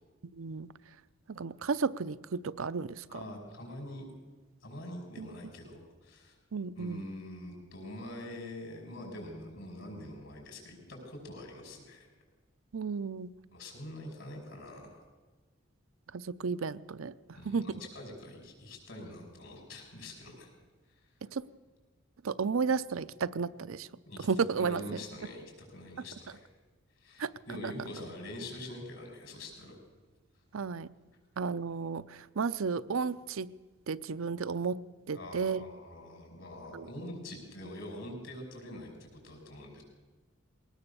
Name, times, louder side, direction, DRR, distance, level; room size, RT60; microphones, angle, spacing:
voice 1, 0.4-0.7 1.3-3.2 5.2-5.3 6.5-7.0 12.7-13.3 16.1-17.1 17.4-17.7 21.3-21.4 22.2-23.9 24.3-25.0 27.2-27.3 27.6-27.7 30.5-30.9 31.4-33.5 33.9-35.6 36.7-36.9, right 5 dB, 75° right, 15 dB, 0.6 m, -33 dB
voice 2, 3.1-4.1 4.6-6.4 6.8-12.1 13.5-15.0 17.3-20.5 24.1-26.5 27.0-29.8 35.1-39.8, left 1 dB, 65° left, 1 dB, 6.0 m, -45 dB
21.0 x 18.5 x 6.9 m, 1.4 s
head